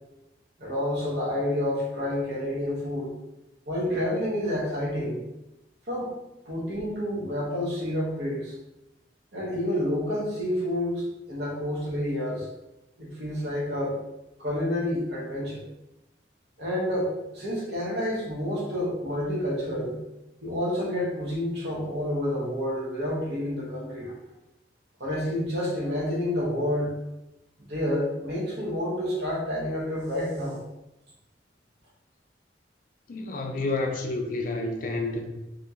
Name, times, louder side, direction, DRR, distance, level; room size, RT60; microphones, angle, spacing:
voice 1, 0.6-3.1 3.7-5.2 5.9-6.1 6.4-8.5 9.3-12.5 13.0-14.0 14.4-15.6 16.6-19.9 20.4-24.1 25.0-26.9 27.6-30.6, left 1 dB, 65° right, -5 dB, 0.9 m, -29 dB
voice 2, 33.1-35.3, left 2 dB, 45° left, 2 dB, 0.4 m, -29 dB
2.7 x 2.3 x 2.7 m, 0.94 s
head